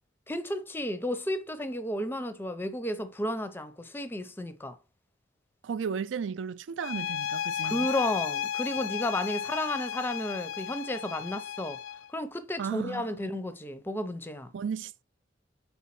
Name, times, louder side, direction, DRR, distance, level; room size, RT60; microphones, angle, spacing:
voice 1, 0.3-4.8 7.6-11.8 12.1-14.5, left 1 dB, 10° left, 0.5 m, -32 dB
voice 2, 5.6-7.9 12.6-13.1 14.5-15.0, right 6 dB, 75° right, 0.4 m, -34 dB
sound 1, 6.8-12.1, left 9 dB, 85° left, 0.3 m, -34 dB
4.5 x 4.2 x 5.7 m
head